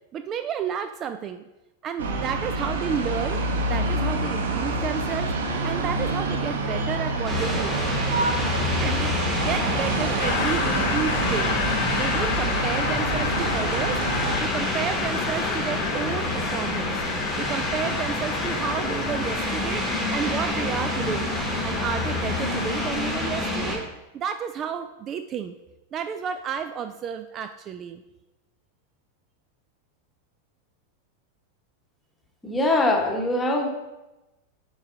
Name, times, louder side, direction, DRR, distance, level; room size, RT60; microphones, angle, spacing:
voice 1, 0.1-1.4 1.8-7.8 8.8-14.0 14.4-17.0 17.4-21.3 21.6-23.8 24.1-25.5 25.9-28.0, right 7 dB, 30° right, 8 dB, 0.3 m, -31 dB
sound 1, 2.0-14.4, right 2 dB, 60° right, 0.9 m, -27 dB
sound 2, 7.3-23.8, left 1 dB, 10° right, 2.0 m, -28 dB
Train, 10.2-23.6, left 10 dB, 45° left, 0.4 m, -32 dB
voice 2, 32.4-33.7, left 2 dB, 15° left, 1 dB, 1.2 m, -22 dB
9.3 x 4.7 x 2.7 m, 1.0 s
figure-of-eight pair, 90°, 0 cm